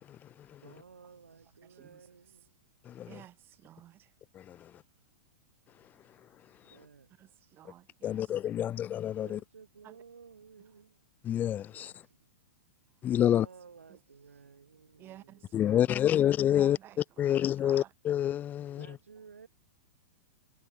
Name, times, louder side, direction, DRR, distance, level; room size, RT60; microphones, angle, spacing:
voice 1, 0.6-2.6 6.6-7.4 9.2-11.0 11.6-12.2 13.2-15.3 18.6-19.5, right 5 dB, 90° right, 7.6 m, -55 dB
voice 2, 1.4-2.4 3.0-4.1 7.1-8.8 9.8-10.0 10.6-10.8 13.3-13.4 13.9-14.0 15.0-17.9, right 13 dB, 30° right, 4.5 m, -54 dB
voice 3, 8.0-9.4 11.2-11.9 13.0-13.5 15.5-16.8 17.2-18.9, left 11 dB, 25° left, 0.4 m, -27 dB
hypercardioid pair, 115°, 7 cm